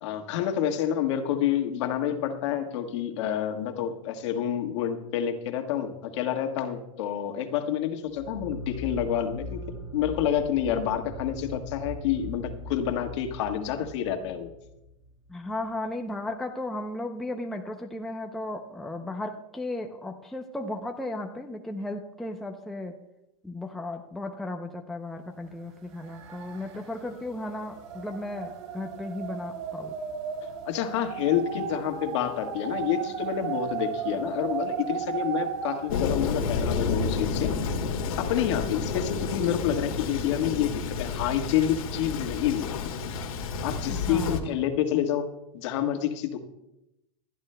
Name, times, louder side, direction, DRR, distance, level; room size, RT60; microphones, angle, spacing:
voice 1, 0.0-14.5 30.6-37.7 38.2-42.9 43.6-46.4, left 9 dB, 55° left, 5 dB, 1.5 m, -28 dB
sound 1, 8.1-15.4, left 1 dB, 15° right, 1.9 m, -40 dB
voice 2, 15.3-23.0 23.4-29.9 43.9-44.6, left 2 dB, ahead, 2 dB, 0.6 m, -35 dB
sound 2, 25.4-25.5 25.8-36.0, right 8 dB, 60° right, 5.3 m, -35 dB
Thunder, 35.9-44.4, left 5 dB, 85° left, 1.8 m, -30 dB
27.5 x 11.0 x 2.2 m, 0.90 s
supercardioid pair, 155°, 18 cm